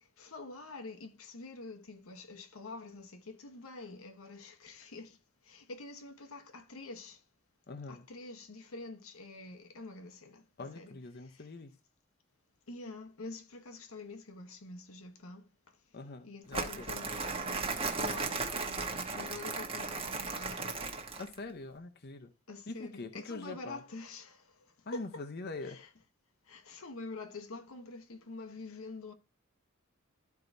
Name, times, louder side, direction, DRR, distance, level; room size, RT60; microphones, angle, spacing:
voice 1, 0.2-5.2 5.4-7.2 7.9-11.5 12.7-15.8 16.2-20.8 22.5-24.7 24.9-25.3 25.6-25.9 26.5-29.1, left 3 dB, 85° left, 1.0 m, -47 dB
voice 2, 7.7-8.0 10.6-11.7 15.9-16.9 21.2-22.3 22.7-23.8 24.9-25.8, left 3 dB, 50° left, 0.7 m, -43 dB
Crumpling crinkling, 16.5-21.4, right 4 dB, 25° right, 1.0 m, -36 dB
13.0 x 4.6 x 2.6 m
head